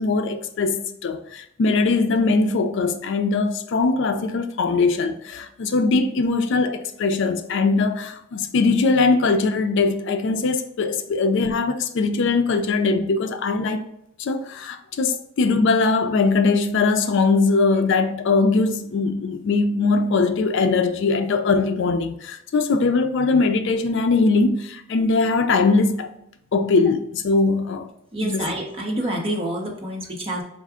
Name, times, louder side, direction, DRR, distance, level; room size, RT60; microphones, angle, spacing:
voice 1, 0.0-13.8 14.2-26.1 26.5-27.9 28.2-28.5, left 3 dB, 65° left, 0.4 m, -21 dB
voice 2, 28.1-30.4, right 1 dB, 30° right, 1.0 m, -27 dB
4.5 x 2.4 x 3.5 m
head